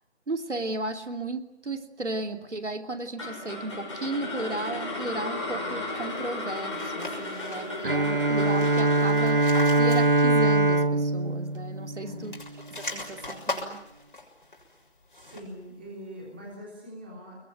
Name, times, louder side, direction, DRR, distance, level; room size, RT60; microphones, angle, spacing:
voice 1, 0.3-9.4 9.8-12.4 12.7-13.8, right 2 dB, 85° right, 6 dB, 3.1 m, -34 dB
sound 1, 3.2-11.4, left 2 dB, 25° left, 6.4 m, -35 dB
sound 2, 6.7-7.9 8.3-10.5 10.8-10.9 12.1-15.6, left 2 dB, 45° left, 6.6 m, -40 dB
Bowed string instrument, 7.8-12.6, right 2 dB, 50° right, 1.1 m, -23 dB
voice 2, 11.9-12.3 15.2-17.4, equal, 10° right, -2 dB, 3.4 m, -42 dB
26.5 x 21.5 x 9.3 m, 0.82 s
figure-of-eight pair, 180°, 34 cm